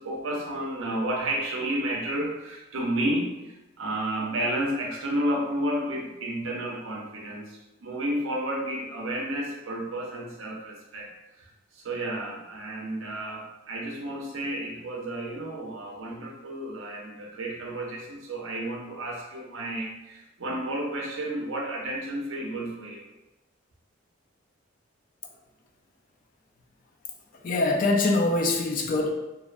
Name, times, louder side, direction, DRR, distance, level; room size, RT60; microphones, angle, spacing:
voice 1, 0.0-11.1 11.4-23.0, right 1 dB, 80° right, -1 dB, 0.6 m, -31 dB
voice 2, 27.3-29.1, left 2 dB, 40° left, 1 dB, 0.3 m, -24 dB
2.5 x 2.1 x 2.4 m, 0.98 s
head